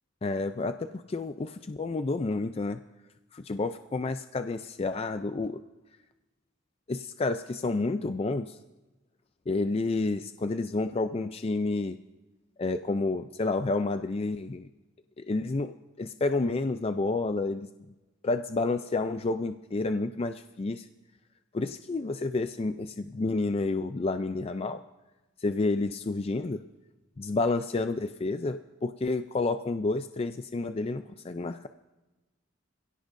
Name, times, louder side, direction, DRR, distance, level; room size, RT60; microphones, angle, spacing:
voice 1, 0.2-2.8 3.3-5.6 6.9-8.6 9.5-12.0 12.6-14.7 15.2-17.7 18.2-20.9 21.5-24.8 25.4-26.6 27.2-31.7, left 3 dB, 30° left, 9 dB, 0.4 m, -30 dB
26.5 x 16.5 x 2.6 m, 1.1 s
head